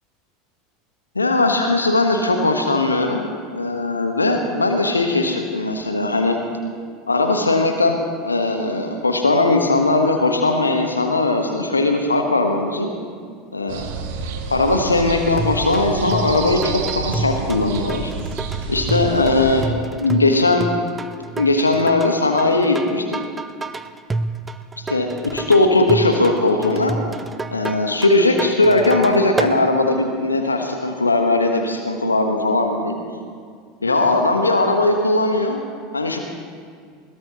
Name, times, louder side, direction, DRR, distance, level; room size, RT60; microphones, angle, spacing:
voice 1, 1.1-3.2 3.5-6.4 7.1-12.9 13.5-13.9 14.5-18.1 18.7-19.7 20.0-20.7 21.3-23.3 24.8-26.9 27.5-32.9 33.8-35.6 35.9-36.2, left 2 dB, 85° left, 4 dB, 1.2 m, -19 dB
sound 1, 13.7-19.7, right 5 dB, 60° right, 1.4 m, -29 dB
sound 2, 15.4-29.6, right 3 dB, 15° right, 0.8 m, -29 dB
21.5 x 17.0 x 2.9 m, 2.1 s
figure-of-eight pair, 80°, 0 cm